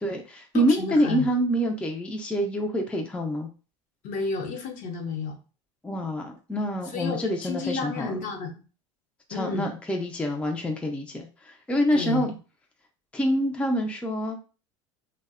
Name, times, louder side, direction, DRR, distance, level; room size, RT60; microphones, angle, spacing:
voice 1, 0.0-3.5 5.8-8.2 9.3-12.3 13.1-14.4, equal, 10° left, 3 dB, 0.4 m, -26 dB
voice 2, 0.5-1.3 4.0-5.4 6.9-8.6 9.3-9.7 11.9-12.3, left 4 dB, 55° left, 3 dB, 0.7 m, -31 dB
2.6 x 2.1 x 2.3 m, 0.34 s
hypercardioid pair, 90°, 16 cm